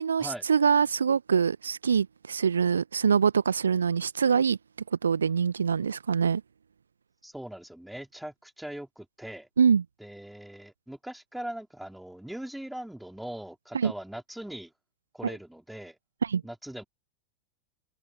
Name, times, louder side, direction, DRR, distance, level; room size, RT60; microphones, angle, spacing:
voice 1, 0.0-4.6 5.0-6.4 9.6-9.8 13.7-13.9 15.2-15.3 16.2-16.4, right 6 dB, 70° right, 1.3 m, -24 dB
voice 2, 7.2-9.5 10.0-14.7 15.1-16.0 16.4-16.8, right 1 dB, ahead, 3.8 m, -40 dB
open air
figure-of-eight pair, 90°, 0 cm